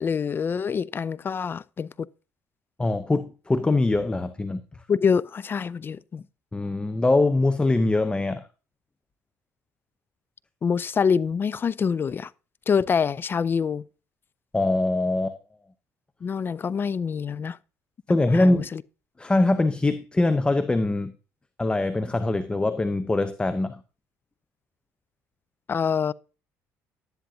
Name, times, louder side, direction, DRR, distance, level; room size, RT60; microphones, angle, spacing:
voice 1, 0.0-2.1 4.9-6.2 10.6-12.3 12.7-13.8 16.2-17.6 18.3-18.8 25.7-26.1, left 6 dB, 35° left, 0.4 m, -25 dB
voice 2, 2.8-4.6 6.5-8.4 14.5-15.4 18.1-18.7 19.2-21.1 21.6-23.8, left 2 dB, 15° left, 0.7 m, -23 dB
11.5 x 10.5 x 2.7 m
supercardioid pair, 85°, 6 cm